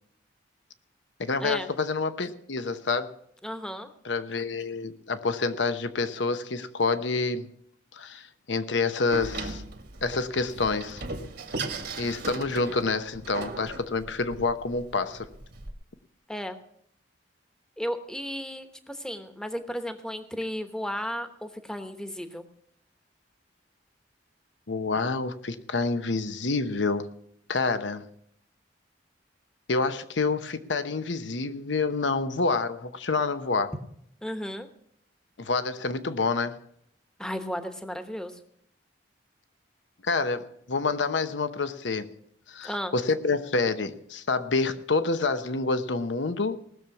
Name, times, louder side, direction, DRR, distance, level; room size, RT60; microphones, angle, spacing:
voice 1, 1.2-3.1 4.0-7.5 7.9-9.6 10.0-11.0 12.0-15.3 24.7-27.1 27.5-28.0 29.7-33.7 35.4-36.6 40.0-42.1 42.5-46.6, left 3 dB, 80° left, 11 dB, 0.9 m, -28 dB
voice 2, 3.4-3.9 16.3-16.6 17.8-22.4 34.2-34.7 37.2-38.4 42.6-42.9, equal, 5° left, 8 dB, 1.0 m, -34 dB
Door, 9.1-15.7, right 2 dB, 60° right, 1.6 m, -37 dB
19.0 x 7.0 x 5.9 m, 0.70 s
head